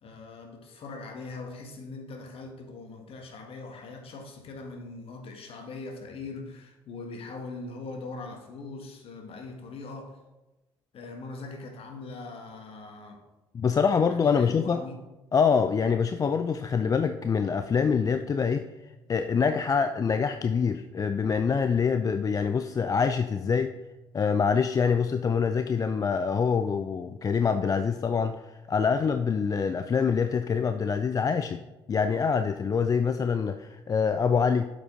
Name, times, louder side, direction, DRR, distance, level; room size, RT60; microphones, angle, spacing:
voice 1, 0.0-10.2 10.9-13.2 14.1-15.0, left 3 dB, 50° left, 3 dB, 1.5 m, -41 dB
voice 2, 13.5-14.8 15.3-18.7 19.1-23.7 24.1-28.4 28.7-31.6 31.9-34.7, left 6 dB, 30° left, 9 dB, 0.4 m, -25 dB
7.9 x 5.2 x 3.8 m, 1.0 s
figure-of-eight pair, 50°, 12 cm